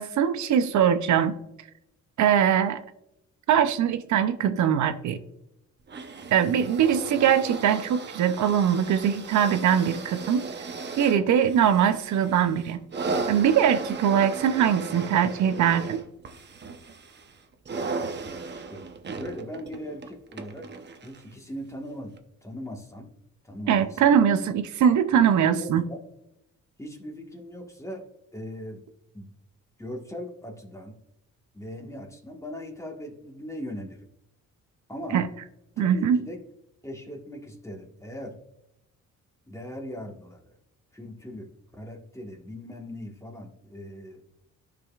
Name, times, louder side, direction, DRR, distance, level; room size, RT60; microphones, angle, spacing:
voice 1, 0.0-1.4 2.2-2.8 3.5-5.2 6.3-10.4 10.9-12.8 13.3-16.0 23.7-25.8 35.1-35.3 35.8-36.2, right 8 dB, 70° right, 10 dB, 0.6 m, -22 dB
sound 1, 5.9-21.3 22.2-22.3, right 4 dB, 35° right, 0.8 m, -36 dB
voice 2, 18.2-18.8 19.2-20.7 21.0-22.1 22.4-23.1 23.4-24.2 25.2-26.0 26.8-28.0 28.3-28.8 29.1-29.3 29.8-30.9 31.5-34.1 34.9-35.2 35.8-36.4 36.8-38.3 39.5-40.5 40.9-44.2, equal, 10° left, 2 dB, 1.5 m, -39 dB
12.5 x 5.0 x 2.4 m, 0.85 s
cardioid pair, 90°, 30 cm